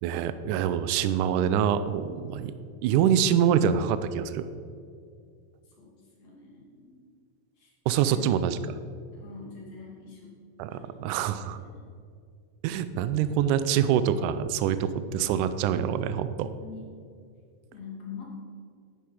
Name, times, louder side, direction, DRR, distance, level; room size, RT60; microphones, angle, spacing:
voice 1, 0.0-2.5 2.8-4.5 7.9-8.6 10.6-11.6 12.6-16.5, right 9 dB, 80° right, 12 dB, 1.8 m, -25 dB
voice 2, 6.2-7.0 7.6-7.7 8.0-8.4 9.1-10.3 10.7-11.8 16.4-16.9 17.7-18.2, left 5 dB, 50° left, -3 dB, 3.4 m, -45 dB
10.5 x 10.5 x 4.9 m, 2.3 s
omnidirectional pair, 4.0 m